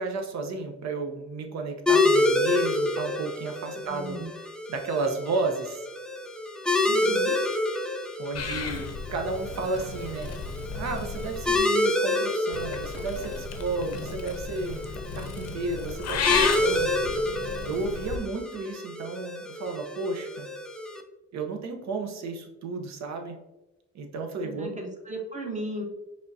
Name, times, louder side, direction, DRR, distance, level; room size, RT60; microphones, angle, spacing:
voice 1, 0.0-5.9 8.2-10.3 10.8-17.1 17.6-20.5 21.3-23.4 23.9-24.8, right 3 dB, 65° right, 4 dB, 0.9 m, -33 dB
sound 1, 1.9-21.0, left 2 dB, 5° left, 0.4 m, -28 dB
voice 2, 3.8-4.3 6.8-7.4 24.4-25.8, right 1 dB, 25° right, 2 dB, 1.1 m, -36 dB
Purr / Meow, 8.3-11.6 12.5-18.2, left 5 dB, 55° left, 0.6 m, -33 dB
5.1 x 3.5 x 2.7 m, 1.0 s
cardioid pair, 90°, 30 cm